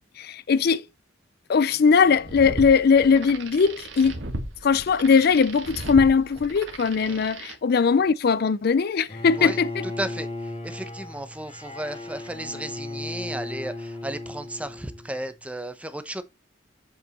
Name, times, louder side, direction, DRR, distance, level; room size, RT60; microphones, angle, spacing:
voice 1, 0.2-0.8 1.5-4.2 4.6-9.8, left 5 dB, 55° left, 0.4 m, -20 dB
sound 1, 2.0-7.6, right 1 dB, 80° right, 1.7 m, -36 dB
Bowed string instrument, 9.1-15.2, left 2 dB, 35° left, 2.4 m, -36 dB
voice 2, 10.0-16.2, right 1 dB, 5° right, 0.8 m, -34 dB
8.0 x 5.2 x 4.1 m
head